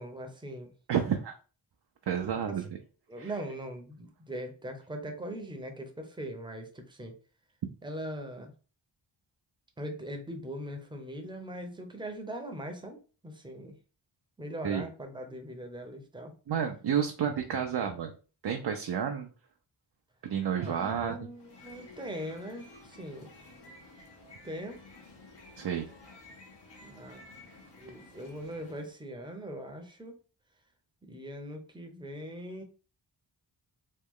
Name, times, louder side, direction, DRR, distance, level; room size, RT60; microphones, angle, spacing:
voice 1, 0.0-0.7 2.5-2.6 3.1-7.2 7.8-8.5 9.8-13.7 14.4-16.3 20.5-23.3 24.4-24.8 26.8-27.2 27.8-30.2 31.0-32.6, equal, 10° right, 5 dB, 0.7 m, -41 dB
voice 2, 0.9-1.3 2.1-2.6 3.2-3.3 14.6-14.9 16.5-18.1 18.4-19.3 20.2-21.3 25.6-25.9, right 8 dB, 55° right, 4 dB, 0.6 m, -30 dB
sound 1, 21.3-28.9, left 2 dB, 60° left, 1.1 m, -53 dB
3.1 x 2.2 x 3.6 m, 0.37 s
cardioid pair, 55°, 47 cm